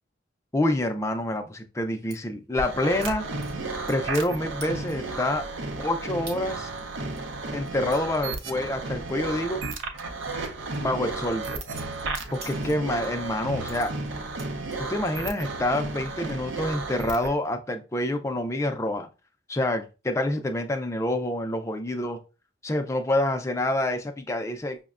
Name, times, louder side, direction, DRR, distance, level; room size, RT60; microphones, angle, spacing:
voice 1, 0.5-3.3 3.9-5.5 5.8-6.7 7.5-9.6 10.7-11.5 12.3-13.9 14.8-19.1 19.5-22.2 22.6-24.8, left 1 dB, 15° left, 6 dB, 0.3 m, -27 dB
sound 1, 2.1-2.2 3.0-3.1 3.4-4.3 4.6-5.1 5.6-5.7 6.3-6.4 6.8-9.1 9.4-9.6 10.0-13.1 13.6-15.2 15.6-16.0 16.3-16.7, right 3 dB, 50° right, 1.0 m, -48 dB
sound 2, 2.6-17.3, right 3 dB, 75° right, 0.6 m, -33 dB
6.0 x 2.1 x 2.4 m, 0.31 s
head